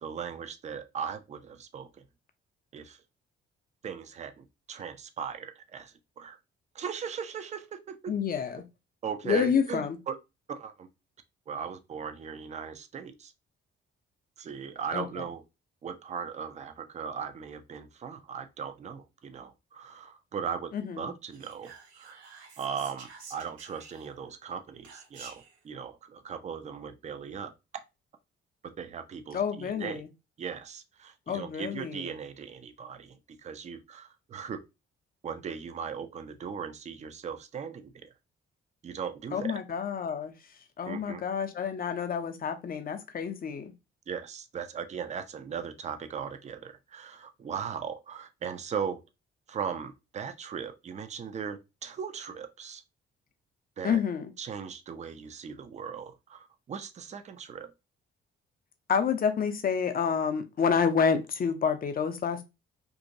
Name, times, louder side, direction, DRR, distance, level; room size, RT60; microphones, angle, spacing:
voice 1, 0.0-2.0 2.7-3.0 3.8-6.4 6.8-8.1 9.0-10.2 10.5-10.9 11.5-13.3 14.4-15.4 15.8-22.2 22.6-27.5 28.6-30.0 30.4-34.6 35.2-38.1 38.8-39.6 40.9-41.2 44.1-49.0 49.5-52.8 53.8-54.0 54.4-57.7, right 7 dB, 20° right, 0.4 m, -38 dB
voice 2, 8.1-8.6 9.2-10.0 14.9-15.1 20.7-21.1 29.3-30.1 31.3-32.1 39.3-40.3 40.8-43.7 53.8-54.3 58.9-62.4, left 6 dB, 30° left, 0.5 m, -28 dB
Whispering, 21.3-24.3 24.8-25.6, right 4 dB, 85° right, 0.5 m, -50 dB
2.8 x 2.6 x 2.6 m
figure-of-eight pair, 40°, 32 cm